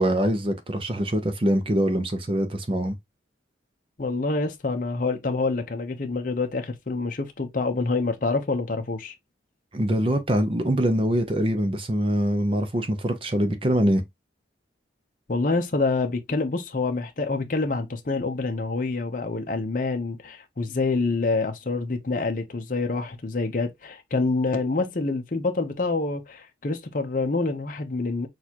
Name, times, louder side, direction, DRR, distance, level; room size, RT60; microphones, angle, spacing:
voice 1, 0.0-3.0 9.7-14.0, right 1 dB, 30° right, 0.5 m, -24 dB
voice 2, 4.0-9.1 15.3-28.3, left 3 dB, 45° left, 0.7 m, -27 dB
6.3 x 2.4 x 2.8 m
head